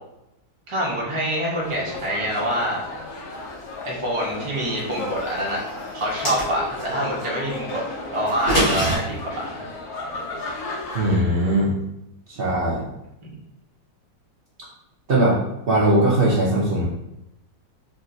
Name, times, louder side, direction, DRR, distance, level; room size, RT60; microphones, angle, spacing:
voice 1, 0.7-2.8 3.8-5.6 5.9-7.8 8.1-9.6, equal, 35° right, -4 dB, 0.4 m, -26 dB
sound 1, 1.6-11.2, left 2 dB, 65° left, 1.0 m, -34 dB
sound 2, 6.0-6.9 8.3-9.0, equal, 40° left, 1.8 m, -23 dB
voice 2, 10.9-11.7 12.3-12.8 15.1-15.4 15.7-16.8, right 1 dB, 90° right, -6 dB, 0.5 m, -19 dB
4.4 x 2.9 x 2.6 m, 0.86 s
omnidirectional pair, 2.0 m